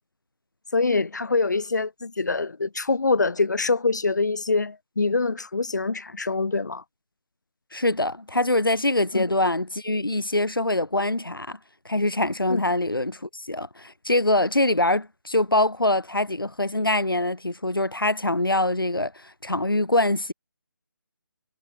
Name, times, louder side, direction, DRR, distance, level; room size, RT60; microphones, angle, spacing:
voice 1, 0.7-6.8 9.1-9.3 12.5-12.6, left 3 dB, 55° left, 2.9 m, -24 dB
voice 2, 7.7-11.6 11.8-20.3, left 1 dB, 75° left, 2.9 m, -24 dB
figure-of-eight pair, 155°, 12 cm